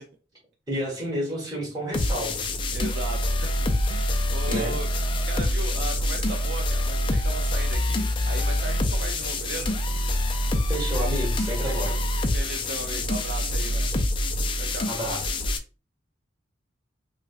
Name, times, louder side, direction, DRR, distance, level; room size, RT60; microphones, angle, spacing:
voice 1, 0.7-2.6 4.5-4.8 10.7-12.0 14.9-15.4, equal, 20° right, -4 dB, 1.6 m, -31 dB
sound 1, 1.9-15.6, left 1 dB, 25° left, 0.3 m, -26 dB
voice 2, 2.7-4.9 5.3-9.8 11.5-11.9 12.3-13.9 14.6-14.9, right 2 dB, 60° right, 3 dB, 0.4 m, -37 dB
4.9 x 2.2 x 2.4 m, 0.36 s
head